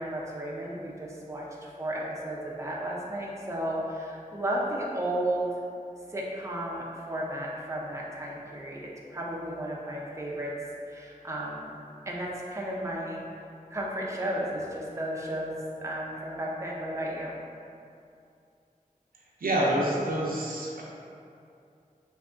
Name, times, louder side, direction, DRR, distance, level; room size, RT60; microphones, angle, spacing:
voice 1, 0.0-5.5 6.1-10.5 10.9-11.7 12.1-13.2 13.7-17.4, right 1 dB, 20° right, -4 dB, 0.5 m, -33 dB
voice 2, 19.4-20.8, right 1 dB, 85° right, -4 dB, 0.5 m, -27 dB
3.5 x 2.6 x 2.4 m, 2.5 s
wide cardioid pair, 55°, 15 cm